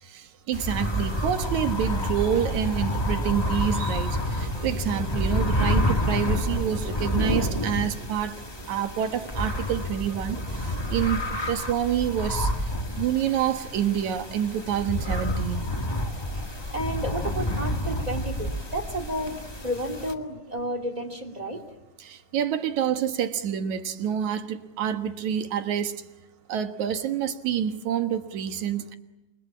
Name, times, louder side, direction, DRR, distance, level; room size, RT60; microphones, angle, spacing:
voice 1, 0.0-8.4 8.7-11.2 11.5-12.5 13.0-15.7 22.0-26.0 26.5-28.9, right 9 dB, 65° right, 2.7 m, -27 dB
sound 1, 0.5-20.1, left 1 dB, 15° left, 0.9 m, -29 dB
sound 2, 4.0-10.8, right 3 dB, 90° right, 3.9 m, -44 dB
voice 2, 16.7-19.4 19.6-21.6, equal, 15° right, 2.2 m, -31 dB
28.5 x 23.0 x 8.6 m
omnidirectional pair, 3.7 m